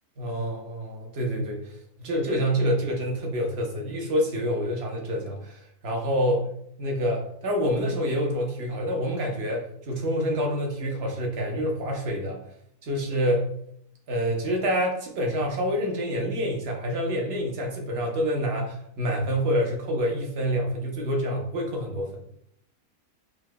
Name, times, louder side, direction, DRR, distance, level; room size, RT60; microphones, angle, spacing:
voice 1, 0.2-1.6 2.0-6.4 6.8-12.4 12.8-13.5 14.1-22.2, equal, 50° right, 1 dB, 0.9 m, -27 dB
4.6 x 2.6 x 2.2 m, 0.70 s
omnidirectional pair, 1.5 m